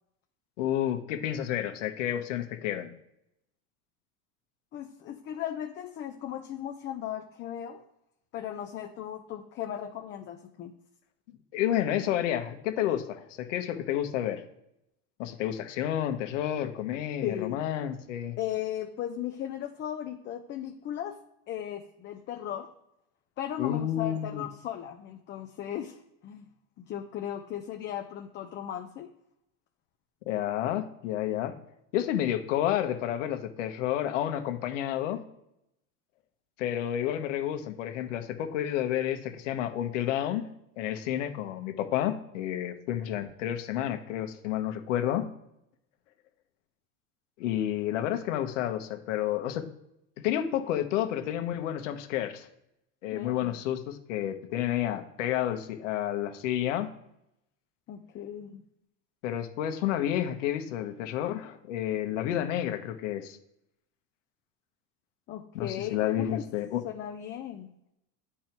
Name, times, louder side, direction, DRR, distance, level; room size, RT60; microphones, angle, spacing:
voice 1, 0.6-2.9 11.5-14.4 15.2-18.4 23.6-24.4 30.3-31.6 31.9-35.2 36.6-40.4 40.8-45.3 47.4-49.7 50.2-52.5 53.0-56.9 59.2-63.4 65.5-66.8, left 11 dB, 85° left, 7 dB, 1.2 m, -30 dB
voice 2, 4.7-7.8 8.3-10.7 17.2-17.6 18.4-21.2 21.5-22.7 23.4-26.0 26.2-26.5 26.8-29.1 53.1-53.6 57.9-58.6 65.3-66.4 66.8-67.7, left 11 dB, 30° left, 4 dB, 0.6 m, -36 dB
9.1 x 4.5 x 4.5 m, 0.82 s
supercardioid pair, 145°, 36 cm